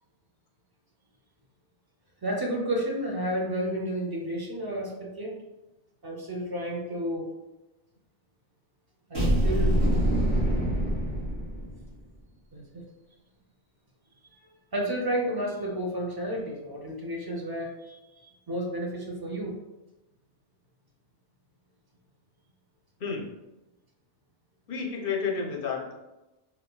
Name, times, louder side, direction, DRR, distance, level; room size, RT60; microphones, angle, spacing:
voice 1, 2.2-5.4 6.0-7.3 9.1-9.8 12.5-12.9 14.2-14.4 14.7-19.5, equal, 30° right, -1 dB, 0.4 m, -31 dB
sound 1, 9.1-11.9, equal, 60° right, 1.5 m, -25 dB
voice 2, 24.7-25.9, left 5 dB, 60° left, 0 dB, 0.7 m, -31 dB
3.6 x 2.7 x 2.2 m, 1.0 s
omnidirectional pair, 1.2 m